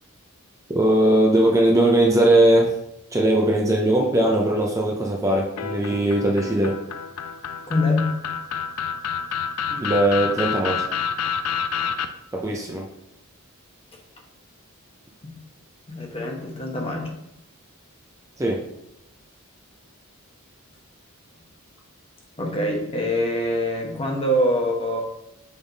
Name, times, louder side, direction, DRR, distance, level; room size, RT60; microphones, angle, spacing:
voice 1, 0.7-2.8 3.1-6.8 9.7-10.8 12.3-12.9 18.4-18.7, right 1 dB, 15° right, -1 dB, 0.6 m, -19 dB
sound 1, 5.6-12.1, left 7 dB, 85° left, 0.5 m, -28 dB
voice 2, 7.7-8.1 15.2-15.4 15.9-17.2 22.4-25.0, left 1 dB, 25° left, 1 dB, 1.1 m, -24 dB
7.0 x 3.5 x 3.9 m, 0.84 s
head